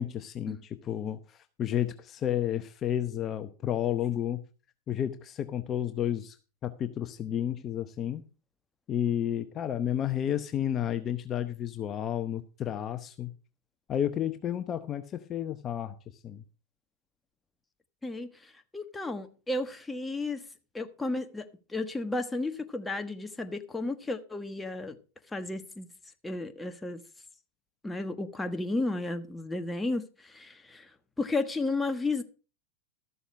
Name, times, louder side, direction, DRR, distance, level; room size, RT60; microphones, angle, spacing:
voice 1, 0.0-4.4 4.9-6.4 6.6-8.2 8.9-13.3 13.9-15.9 16.2-16.4, left 10 dB, 30° left, 0.8 m, -31 dB
voice 2, 18.0-20.5 20.7-25.0 25.3-25.9 26.2-27.0 27.8-32.2, left 2 dB, 10° left, 1.2 m, -33 dB
13.5 x 7.0 x 5.3 m
hypercardioid pair, 115°, 0 cm